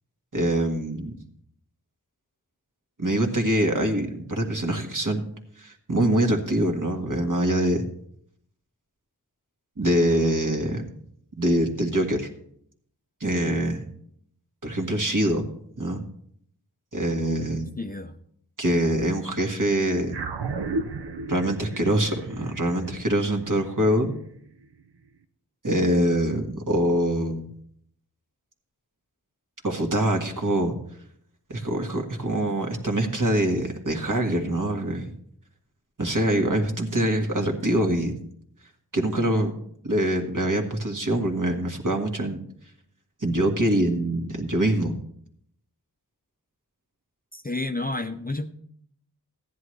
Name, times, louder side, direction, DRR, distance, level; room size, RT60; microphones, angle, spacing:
voice 1, 0.3-1.2 3.0-5.2 5.6-7.8 9.8-10.8 11.4-12.3 13.2-13.8 14.6-15.4 15.8-16.0 16.9-17.7 18.6-20.2 21.3-24.1 25.6-27.5 29.6-30.8 31.5-35.1 36.0-38.2 38.9-39.5 39.8-42.4 43.2-44.9, right 1 dB, 50° right, 1.7 m, -24 dB
voice 2, 17.8-18.2 47.3-48.5, left 2 dB, 25° left, 0.6 m, -30 dB
sound 1, 20.1-24.7, right 3 dB, 85° right, 0.7 m, -34 dB
14.5 x 10.5 x 3.2 m
wide cardioid pair, 50°, 39 cm